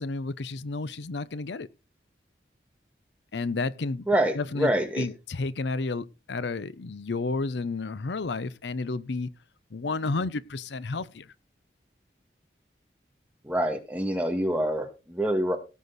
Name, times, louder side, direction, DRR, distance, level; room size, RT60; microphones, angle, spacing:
voice 1, 0.0-1.7 3.3-4.0 4.3-4.7 5.0-9.3 9.7-11.3, left 3 dB, 80° left, 0.6 m, -31 dB
voice 2, 4.1-5.1 13.4-15.6, right 1 dB, 10° right, 1.8 m, -26 dB
17.5 x 6.4 x 4.1 m
head